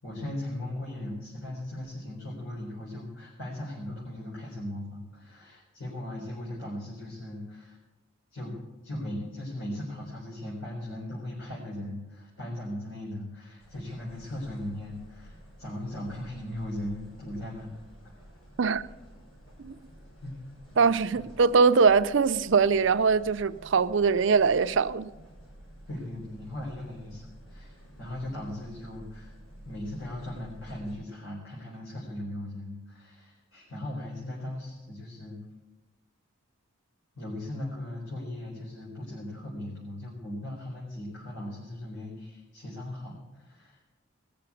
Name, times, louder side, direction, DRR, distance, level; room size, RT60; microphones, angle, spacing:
voice 1, 0.0-7.8 8.3-8.5 8.8-17.7 18.0-18.1 20.2-20.5 20.7-20.8 21.1-21.2 25.9-29.3 29.6-35.4 37.1-43.9, left 1 dB, 75° left, 4.2 m, -38 dB
sound 1, 13.6-30.9, equal, 90° left, 5.5 m, -51 dB
voice 2, 20.8-25.1, right 5 dB, 60° right, 0.5 m, -22 dB
19.5 x 6.8 x 8.5 m
head